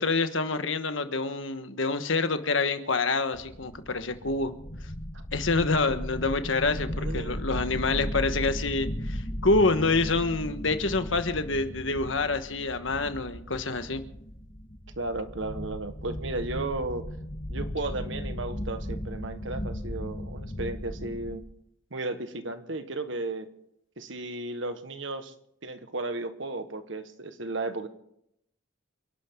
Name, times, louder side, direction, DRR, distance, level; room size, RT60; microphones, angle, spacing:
voice 1, 0.0-4.5 5.3-14.0, left 3 dB, 75° left, 9 dB, 1.4 m, -27 dB
sound 1, 3.3-21.4, equal, 40° left, 1.6 m, -36 dB
voice 2, 6.9-7.6 15.0-17.1 17.5-21.4 21.9-23.5 24.0-25.3 25.6-27.9, right 2 dB, 75° right, 9 dB, 1.5 m, -34 dB
29.0 x 11.5 x 3.8 m, 0.74 s
head